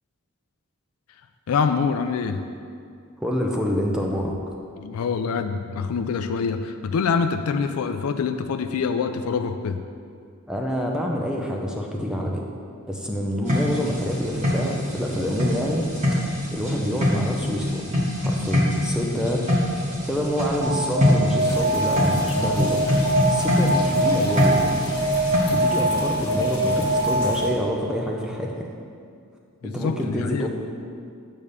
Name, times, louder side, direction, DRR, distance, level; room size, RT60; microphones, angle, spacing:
voice 1, 1.5-2.5 4.8-9.8 29.6-30.5, left 5 dB, 90° left, 8 dB, 0.4 m, -25 dB
voice 2, 3.2-4.3 10.5-12.4 12.9-17.8 18.2-19.5 20.0-24.7 25.5-28.6 29.6-30.5, equal, 5° right, 0 dB, 0.6 m, -27 dB
sound 1, 13.5-25.4, left 1 dB, 35° right, 1.3 m, -24 dB
Alarm, 20.6-27.7, right 1 dB, 80° right, 1.3 m, -24 dB
sound 2, 21.4-27.5, left 1 dB, 20° left, 1.8 m, -34 dB
8.2 x 3.6 x 6.7 m, 2.3 s
head